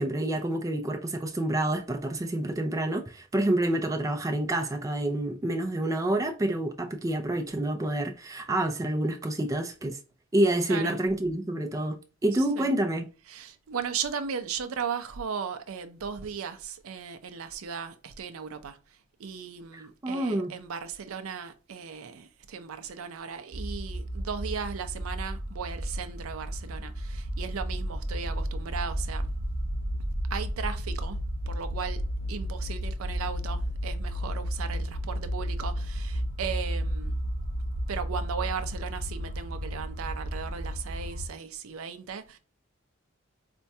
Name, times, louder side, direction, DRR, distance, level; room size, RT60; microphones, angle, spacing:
voice 1, 0.0-10.0 10.3-13.1 19.7-20.5, right 1 dB, 15° right, 0.3 m, -28 dB
voice 2, 10.7-11.0 12.4-12.7 13.2-29.3 30.3-31.2 31.5-32.0 32.3-37.1 37.9-42.4, right 6 dB, 85° right, 0.5 m, -36 dB
sound 1, 23.5-41.3, equal, 30° left, 0.9 m, -33 dB
4.3 x 2.3 x 2.7 m
head